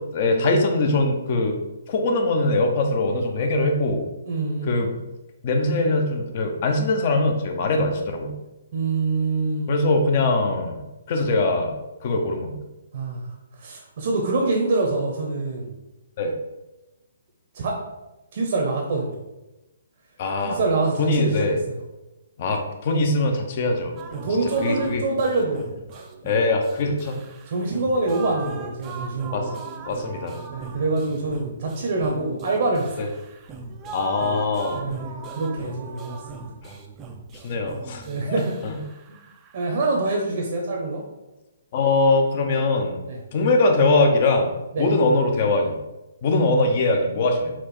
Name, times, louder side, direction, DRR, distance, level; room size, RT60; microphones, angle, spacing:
voice 1, 0.1-1.6 1.9-4.1 4.7-4.9 5.4-8.3 9.7-10.8 11.1-11.7 12.0-12.5 16.2-16.3 20.2-20.6 21.0-21.6 22.4-23.9 24.6-25.0 26.2-27.2 29.3-29.5 29.9-30.4 33.0-33.1 33.9-34.8 37.4-38.0 38.3-38.4 38.6-38.8 41.7-43.0 43.3-44.5 44.8-45.8 46.2-47.5, left 2 dB, 45° left, 4 dB, 0.7 m, -22 dB
voice 2, 4.3-4.8 8.7-9.8 12.9-13.3 13.6-15.7 17.5-17.8 18.3-19.2 20.4-21.8 24.2-25.6 25.9-26.1 27.5-29.6 30.5-33.1 34.7-36.4 38.1-38.5 39.5-41.0 43.1-43.2 44.7-44.9, right 3 dB, 55° right, 0 dB, 0.8 m, -25 dB
sound 1, 24.0-39.7, right 4 dB, 20° right, 0.4 m, -39 dB
4.3 x 2.4 x 4.4 m, 1.0 s
hypercardioid pair, 145°, 0 cm